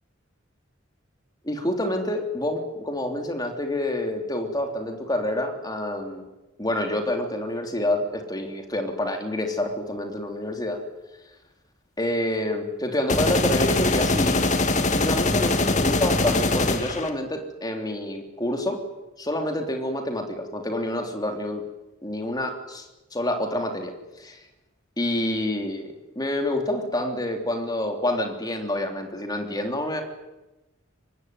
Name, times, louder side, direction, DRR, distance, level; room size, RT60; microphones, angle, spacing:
voice 1, 1.4-6.3 6.6-10.8 12.0-14.5 14.9-18.8 19.2-21.6 22.0-22.8 23.1-24.4 25.0-30.0, left 1 dB, 20° left, 4 dB, 3.4 m, -28 dB
sound 1, 13.1-17.1, left 2 dB, 35° left, 2.1 m, -22 dB
24.5 x 20.0 x 9.5 m, 1.0 s
head